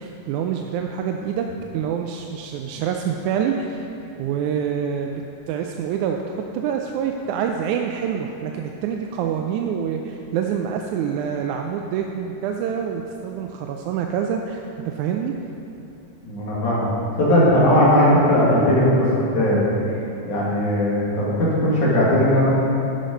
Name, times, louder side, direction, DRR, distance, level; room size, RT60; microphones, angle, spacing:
voice 1, 0.0-1.5 1.7-3.9 4.2-5.2 5.5-15.3, right 8 dB, 90° right, 3 dB, 2.0 m, -26 dB
voice 2, 16.2-16.9 17.2-19.7 20.3-22.5, left 1 dB, 80° left, -7 dB, 3.6 m, -18 dB
12.0 x 6.3 x 5.3 m, 3.0 s
omnidirectional pair, 3.4 m